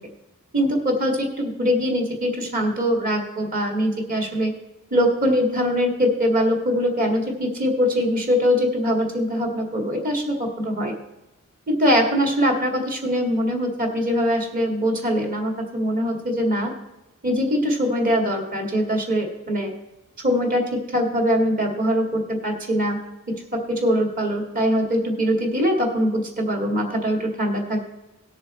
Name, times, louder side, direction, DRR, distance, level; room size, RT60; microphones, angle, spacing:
voice 1, 0.5-4.5 4.9-10.9 11.7-16.7 17.2-19.7 20.2-23.0 23.7-27.8, equal, 40° right, 2 dB, 2.0 m, -22 dB
18.0 x 6.6 x 4.3 m, 1.0 s
head